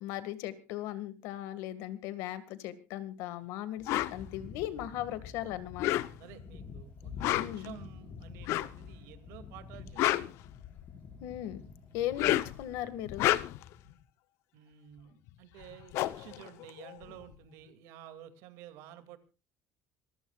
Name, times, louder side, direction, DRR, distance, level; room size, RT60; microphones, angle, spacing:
voice 1, 0.0-5.9 7.4-7.7 11.2-11.6 11.9-13.3, left 12 dB, 80° left, 13 dB, 1.8 m, -38 dB
sound 1, 3.8-13.9, left 5 dB, 40° left, 5.3 m, -49 dB
sound 2, 3.9-4.1 5.7-6.4 7.1-7.7 8.4-8.8 9.7-11.0 12.0-12.6 13.0-13.7 15.3-15.4 15.6-17.3, left 15 dB, 65° left, 0.8 m, -30 dB
voice 2, 6.2-10.4 14.5-19.2, right 11 dB, 80° right, 10 dB, 2.4 m, -51 dB
26.0 x 15.0 x 2.4 m, 0.31 s
cardioid pair, 170°, 5 cm